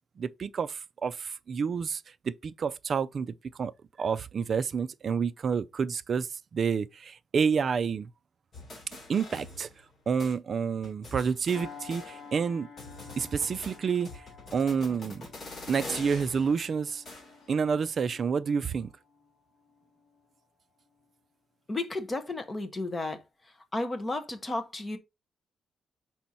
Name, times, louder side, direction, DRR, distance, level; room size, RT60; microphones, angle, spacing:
voice 1, 0.2-3.7 4.0-6.3 6.5-8.1 9.1-9.7 10.1-12.7 13.2-14.1 14.5-15.3 15.7-17.0 17.5-18.9, right 6 dB, 35° right, 0.4 m, -29 dB
sound 1, 8.5-9.9 10.2-10.3 10.8-12.5 12.8-17.6, left 2 dB, 35° left, 2.9 m, -45 dB
sound 2, 11.5-20.4 20.9-21.1, left 5 dB, 70° left, 3.7 m, -51 dB
voice 2, 21.7-23.2 23.7-25.0, left 2 dB, 20° left, 1.0 m, -33 dB
6.1 x 4.4 x 4.0 m
cardioid pair, 175°, 0 cm